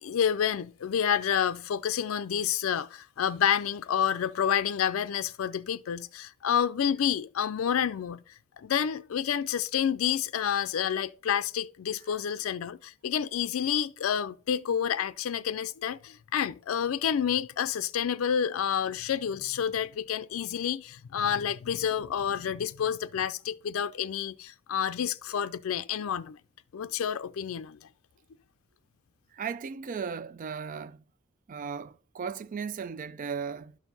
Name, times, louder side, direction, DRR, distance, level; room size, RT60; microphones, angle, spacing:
voice 1, 0.0-8.2 8.6-26.4 26.7-27.8, left 8 dB, 90° left, 0.4 m, -29 dB
voice 2, 29.3-31.0 31.5-33.8, right 6 dB, 40° right, 0.3 m, -36 dB
11.5 x 4.5 x 4.0 m
head